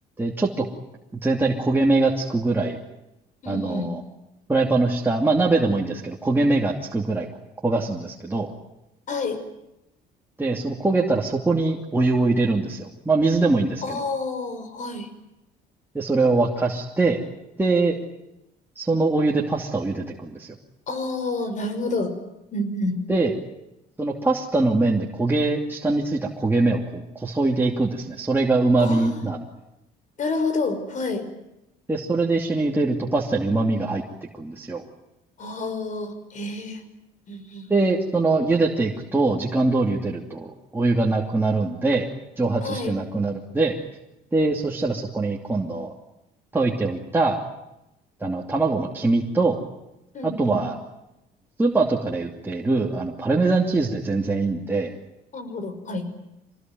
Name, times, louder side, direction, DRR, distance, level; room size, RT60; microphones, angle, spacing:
voice 1, 0.2-0.7 1.2-2.8 3.5-4.0 4.5-7.3 7.6-8.5 10.4-14.0 15.9-17.2 17.6-18.0 18.8-20.5 23.1-23.3 24.0-29.4 31.9-34.0 34.3-34.8 37.7-42.1 42.4-43.8 44.3-45.9 46.5-47.4 48.2-49.6 50.2-50.8 51.6-54.9, right 3 dB, 10° right, -2 dB, 2.8 m, -22 dB
voice 2, 3.4-3.9 9.1-9.4 13.8-15.1 20.9-22.1 22.5-23.0 28.8-29.2 30.2-31.2 35.4-36.8 37.3-37.7 42.6-42.9 50.1-50.6 55.3-56.1, left 3 dB, 45° left, 10 dB, 5.6 m, -29 dB
25.5 x 20.0 x 9.4 m, 0.90 s
cardioid pair, 110°, 17 cm